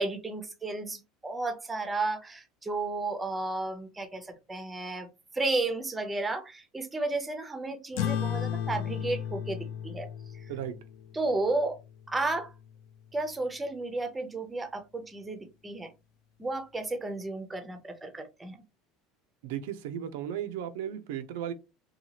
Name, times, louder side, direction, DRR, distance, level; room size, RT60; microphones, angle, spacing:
voice 1, 0.0-5.1 5.3-9.6 9.8-10.1 11.1-11.8 12.1-12.5 13.1-15.9 16.4-18.6, right 2 dB, 10° right, 0.5 m, -33 dB
sound 1, 8.0-12.8, left 9 dB, 75° left, 0.4 m, -35 dB
voice 2, 19.4-21.5, right 10 dB, 90° right, 0.4 m, -35 dB
2.8 x 2.3 x 2.8 m
cardioid pair, 140°, 0 cm